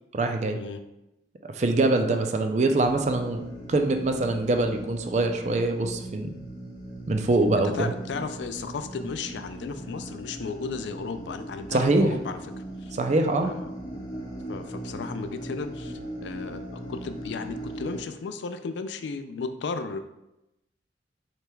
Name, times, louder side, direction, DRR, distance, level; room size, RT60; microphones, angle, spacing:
voice 1, 0.1-0.6 1.5-3.4 3.7-6.3 7.1-7.9 11.7-12.2 12.9-13.5, right 2 dB, 40° right, 5 dB, 0.4 m, -24 dB
sound 1, 2.9-18.0, right 1 dB, 20° left, 0.9 m, -39 dB
voice 2, 7.6-12.9 13.4-13.7 14.5-20.0, left 4 dB, 85° left, 9 dB, 0.4 m, -35 dB
5.0 x 4.3 x 2.3 m, 0.91 s
head